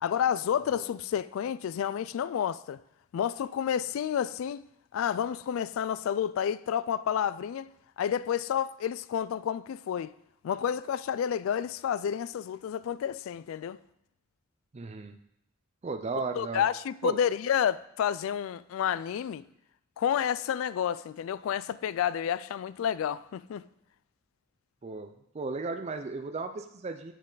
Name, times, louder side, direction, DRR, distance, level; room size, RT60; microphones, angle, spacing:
voice 1, 0.0-2.8 3.1-4.6 4.9-7.7 8.0-10.1 10.4-13.8 16.4-19.4 20.0-23.6, left 9 dB, 80° left, 0.3 m, -30 dB
voice 2, 14.7-15.2 15.8-16.6 17.0-17.2 24.8-27.1, right 3 dB, 35° right, 0.4 m, -35 dB
9.1 x 6.7 x 3.9 m
head